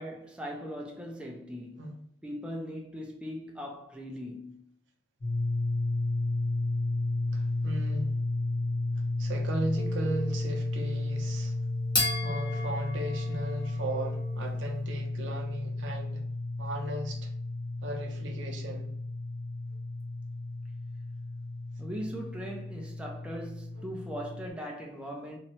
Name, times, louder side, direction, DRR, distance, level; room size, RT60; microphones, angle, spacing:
voice 1, 0.0-1.9 2.2-4.7 21.8-25.4, equal, 5° right, 0.3 m, -39 dB
sound 1, 5.2-24.5, left 2 dB, 65° left, 0.8 m, -33 dB
voice 2, 7.3-8.2 9.2-11.6 12.2-16.2 16.6-17.3 17.8-18.9 23.8-23.9, right 1 dB, 75° right, 0.5 m, -36 dB
sound 2, 9.7-14.6, left 2 dB, 25° left, 0.7 m, -36 dB
2.7 x 2.1 x 2.7 m
head